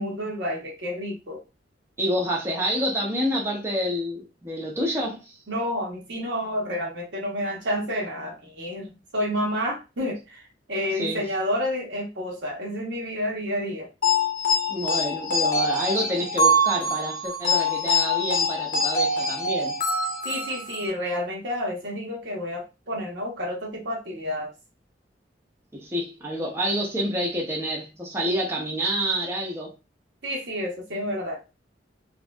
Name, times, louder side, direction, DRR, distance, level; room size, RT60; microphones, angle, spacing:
voice 1, 0.0-1.4 5.5-10.4 10.7-13.9 20.2-24.5 30.2-31.4, equal, 70° right, 1.0 m, -30 dB
voice 2, 2.0-5.4 10.9-11.2 14.7-19.7 25.7-29.7, equal, 15° right, 0.7 m, -28 dB
sound 1, 14.0-20.9, left 1 dB, 50° left, 0.7 m, -24 dB
3.0 x 2.6 x 2.3 m
head